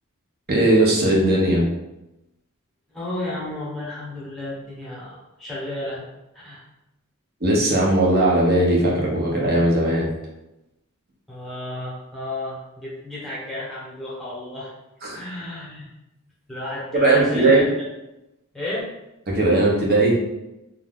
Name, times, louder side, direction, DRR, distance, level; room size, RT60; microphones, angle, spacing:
voice 1, 0.5-1.6 7.4-10.1 15.0-15.2 16.9-17.7 19.3-20.2, right 2 dB, 45° right, -3 dB, 0.8 m, -18 dB
voice 2, 2.9-6.1 6.3-6.6 11.3-14.7 15.1-15.9 16.5-17.7 18.5-18.9, left 1 dB, ahead, -7 dB, 1.0 m, -32 dB
2.6 x 2.4 x 3.5 m, 0.92 s
head